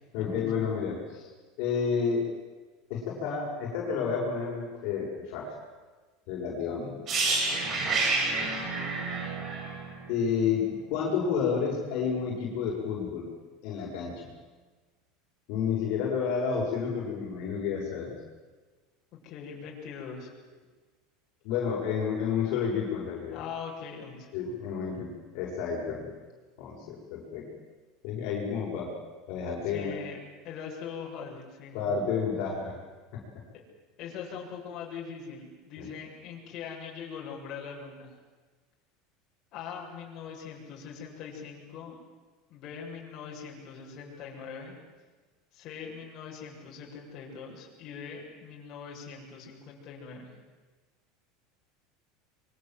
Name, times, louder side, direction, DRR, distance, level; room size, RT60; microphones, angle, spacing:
voice 1, 0.1-1.3 1.6-2.3 2.9-5.6 6.3-7.0 10.1-13.3 13.6-14.3 15.5-18.1 21.4-23.4 24.3-26.1 26.6-27.5 28.0-28.9 29.3-30.0 31.7-32.8 33.1-33.2 35.8-35.9, left 6 dB, 60° left, -2 dB, 6.8 m, -30 dB
sound 1, 7.1-10.9 11.2-11.4, right 3 dB, 35° right, 6.8 m, -29 dB
voice 2, 19.1-20.3 23.3-24.3 29.7-30.2 30.4-31.8 33.5-33.6 34.0-38.2 39.5-42.0 42.5-44.8 45.5-50.4, left 6 dB, 45° left, -2 dB, 7.3 m, -42 dB
25.5 x 24.0 x 7.8 m, 1.4 s
supercardioid pair, 140°, 0 cm